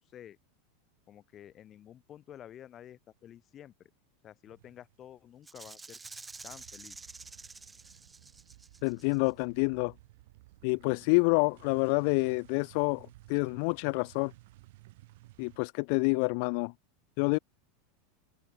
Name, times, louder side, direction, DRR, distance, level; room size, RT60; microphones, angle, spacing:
voice 1, 1.1-3.9 4.2-6.0 6.4-7.0, left 11 dB, 25° left, 2.4 m, -51 dB
sound 1, 4.5-5.2 5.5-15.6, right 19 dB, 65° right, 7.3 m, -57 dB
Rattle (instrument), 5.5-9.3, right 3 dB, 10° right, 1.8 m, -49 dB
voice 2, 8.8-9.9 10.6-14.3 15.4-16.7 17.2-17.4, left 37 dB, 55° left, 0.6 m, -28 dB
open air
supercardioid pair, 155°, 0 cm